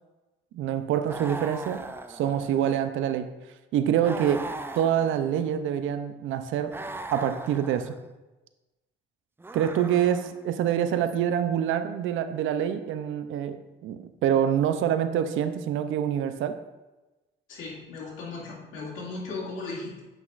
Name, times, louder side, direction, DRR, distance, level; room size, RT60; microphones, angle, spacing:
voice 1, 0.5-1.8 2.1-3.3 3.7-6.8 7.1-8.0 9.5-16.6, right 9 dB, 80° right, 10 dB, 0.5 m, -26 dB
sound 1, 1.0-2.8 4.0-5.6 6.7-8.0 9.4-10.5, right 2 dB, 10° right, 0.4 m, -39 dB
voice 2, 17.5-20.0, left 3 dB, 85° left, -5 dB, 2.2 m, -37 dB
8.1 x 5.9 x 2.5 m, 1.1 s
cardioid pair, 90°, 20 cm